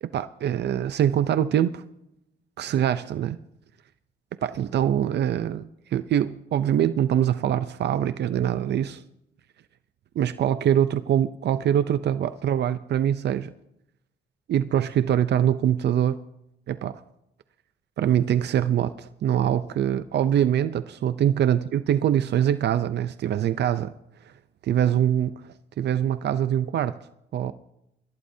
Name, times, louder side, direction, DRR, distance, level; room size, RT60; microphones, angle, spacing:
voice 1, 0.0-1.8 2.6-3.4 4.4-9.0 10.2-13.5 14.5-16.2 16.7-17.0 18.0-23.9 24.6-27.0 27.3-27.5, right 10 dB, 70° right, 0.6 m, -24 dB
26.0 x 15.0 x 2.8 m
cardioid pair, 105°, 18 cm